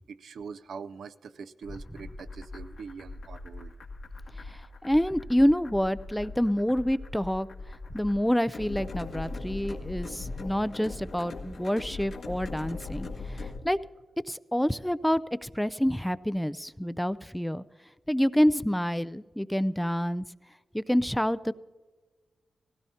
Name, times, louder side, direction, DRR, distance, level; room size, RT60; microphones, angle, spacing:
voice 1, 0.1-3.7, right 5 dB, 85° right, 12 dB, 0.5 m, -43 dB
sound 1, 1.6-13.6, left 3 dB, 75° left, 2.0 m, -40 dB
voice 2, 4.3-13.8 14.3-17.6 18.1-20.2 20.7-21.5, equal, 5° left, 16 dB, 0.3 m, -27 dB
18.5 x 16.0 x 2.8 m, 1.4 s
cardioid pair, 80°, 0 cm